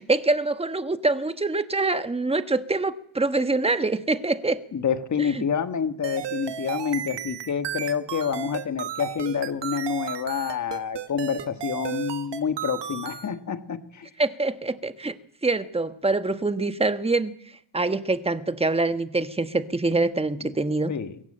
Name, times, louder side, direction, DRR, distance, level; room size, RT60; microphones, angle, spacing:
voice 1, 0.0-4.6 5.3-5.4 14.2-15.2 15.4-17.3 17.7-20.9, right 3 dB, 15° right, 11 dB, 1.3 m, -25 dB
voice 2, 4.7-14.1 20.4-20.5 20.9-21.2, left 7 dB, 40° left, 10 dB, 1.6 m, -28 dB
sound 1, 6.0-13.3, right 10 dB, 75° right, 1.6 m, -34 dB
22.5 x 16.5 x 8.8 m, 0.68 s
cardioid pair, 115°, 42 cm